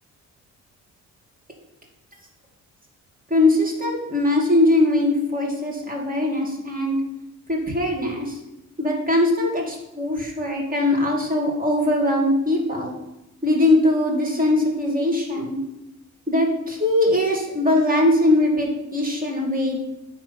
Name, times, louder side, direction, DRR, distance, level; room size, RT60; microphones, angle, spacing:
voice 1, 3.3-7.0 7.5-8.4 8.8-12.9 13.4-15.6 16.3-19.8, left 1 dB, 30° right, 0 dB, 2.3 m, -21 dB
9.6 x 3.7 x 5.9 m, 0.91 s
cardioid pair, 90°, 30 cm